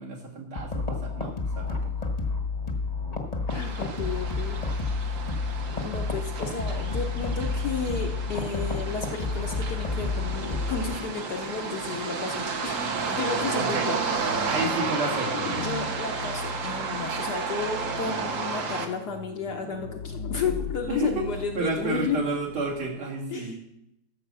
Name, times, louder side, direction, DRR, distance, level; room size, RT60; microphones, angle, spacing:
voice 1, 0.0-1.9 13.5-13.9 14.4-15.7 20.8-21.2 21.5-23.6, right 3 dB, 75° right, -4 dB, 3.3 m, -31 dB
sound 1, 0.6-11.0, left 4 dB, 25° left, 1.0 m, -30 dB
voice 2, 3.5-4.6 5.8-12.8 13.1-14.5 15.5-22.3 23.3-23.6, left 5 dB, 60° left, 3 dB, 1.1 m, -33 dB
sound 2, 3.5-18.9, right 5 dB, 50° right, 1.0 m, -32 dB
sound 3, 14.2-23.0, left 5 dB, 80° left, 1.7 m, -38 dB
13.0 x 5.1 x 6.9 m, 0.83 s
omnidirectional pair, 2.4 m